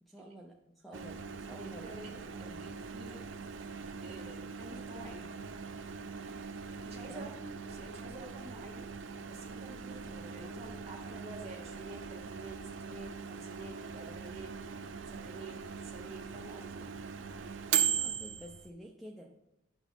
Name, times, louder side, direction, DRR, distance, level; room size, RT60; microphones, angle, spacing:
voice 1, 0.0-1.9 2.3-2.6 7.1-7.4 17.7-19.3, equal, ahead, -2 dB, 0.6 m, -50 dB
Microwave oven, 0.9-18.7, right 7 dB, 70° right, 0.5 m, -40 dB
voice 2, 1.5-2.1 2.5-3.2 3.6-5.4 6.8-8.9 9.3-14.7 15.1-16.8, right 2 dB, 30° right, -3 dB, 2.2 m, -49 dB
11.5 x 6.1 x 3.5 m, 0.91 s
head